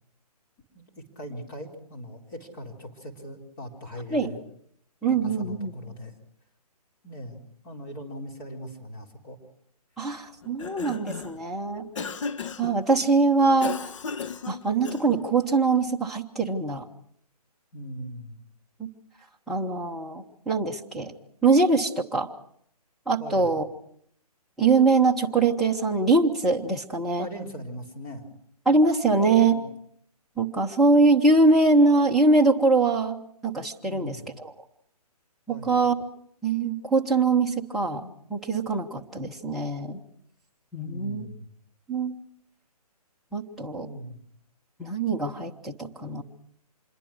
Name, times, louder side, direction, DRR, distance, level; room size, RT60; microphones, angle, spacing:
voice 1, 0.7-4.4 5.1-6.1 7.0-9.4 17.7-18.4 23.2-23.5 27.2-28.3 29.1-29.7 33.8-34.2 35.5-35.8 40.8-41.5 43.7-44.2, equal, 30° left, 0 dB, 4.2 m, -40 dB
voice 2, 5.0-5.7 10.0-11.9 12.6-13.7 14.5-16.8 18.8-18.9 19.5-21.1 21.4-22.3 23.1-23.7 24.6-27.3 28.6-29.6 30.4-34.5 35.5-35.9 36.4-40.0 40.7-41.3 41.9-42.1 43.3-43.9 44.8-46.2, right 3 dB, ahead, -6 dB, 1.1 m, -23 dB
Cough, 10.4-11.4 12.0-12.8 13.6-15.3, left 5 dB, 50° left, 0.9 m, -35 dB
26.0 x 22.5 x 6.3 m, 0.68 s
figure-of-eight pair, 140°, 20 cm